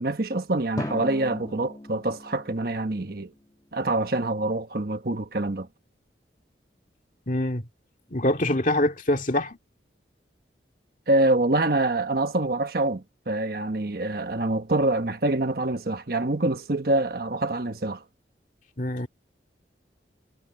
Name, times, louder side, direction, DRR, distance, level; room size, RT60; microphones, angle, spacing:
voice 1, 0.0-3.3 3.7-5.7 11.1-18.0, right 2 dB, 55° right, 1.2 m, -25 dB
Drum, 0.8-3.7, left 1 dB, 20° left, 1.8 m, -38 dB
voice 2, 7.3-7.6 8.1-9.6 18.8-19.1, left 1 dB, 45° left, 2.2 m, -24 dB
head